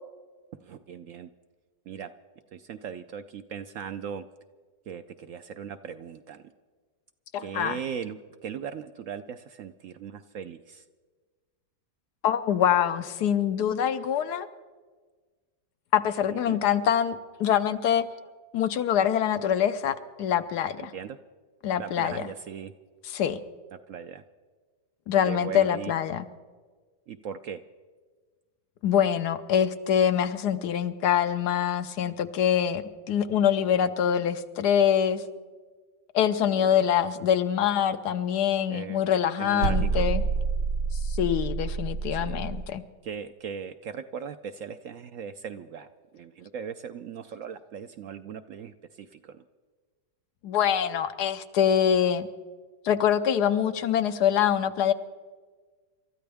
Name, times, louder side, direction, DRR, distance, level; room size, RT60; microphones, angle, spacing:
voice 1, 0.6-1.3 1.9-2.1 2.5-4.3 4.9-6.5 7.4-10.8 16.3-16.6 20.8-21.2 21.8-22.7 23.7-24.2 25.2-25.9 27.1-27.6 36.5-36.8 38.7-39.0 39.4-40.1 42.1-42.4 43.0-45.9 46.1-49.4, right 7 dB, 65° right, 9 dB, 0.8 m, -39 dB
voice 2, 7.3-7.8 12.2-14.5 15.9-18.1 18.5-20.9 21.6-22.2 23.1-23.4 25.1-26.2 28.8-35.2 36.1-40.2 41.1-42.8 50.4-52.3 52.8-54.9, left 9 dB, 75° left, 10 dB, 1.3 m, -24 dB
sound 1, 39.6-42.7, right 5 dB, 85° right, 1.4 m, -28 dB
27.5 x 13.5 x 3.5 m, 1.4 s
omnidirectional pair, 1.8 m